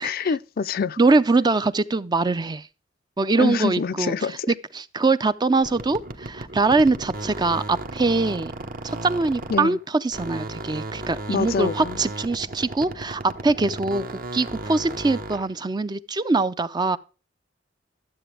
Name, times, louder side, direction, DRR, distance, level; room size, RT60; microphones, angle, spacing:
voice 1, 0.0-1.0 3.4-4.5 9.5-9.8 11.3-12.0, left 5 dB, 50° left, 0.4 m, -26 dB
voice 2, 1.0-2.7 3.2-4.1 4.5-8.5 8.8-17.0, right 3 dB, 20° right, 0.4 m, -23 dB
sound 1, 5.6-9.8 10.1-15.5, right 2 dB, 50° right, 1.1 m, -35 dB
12.5 x 7.7 x 3.3 m
head